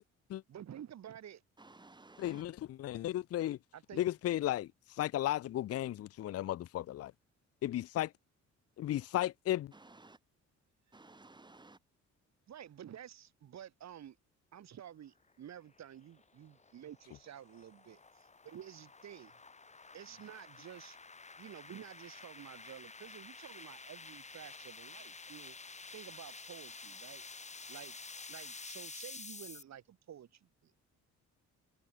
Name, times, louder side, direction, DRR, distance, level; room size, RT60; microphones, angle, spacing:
voice 1, 0.5-1.4 3.7-4.0 10.9-11.0 12.5-14.2 14.5-19.3 19.9-21.0 21.4-25.6 25.9-27.3 27.7-28.0 28.3-30.8, right 10 dB, 60° right, 3.3 m, -51 dB
voice 2, 1.6-2.4 9.7-10.2 10.9-11.8, right 2 dB, 15° right, 1.8 m, -56 dB
voice 3, 2.2-3.6 4.0-4.7 5.0-7.1 7.6-8.1 8.8-9.7, left 13 dB, 55° left, 0.5 m, -34 dB
sound 1, 15.7-29.6, left 4 dB, 25° left, 1.7 m, -50 dB
cardioid pair, 90°, 30 cm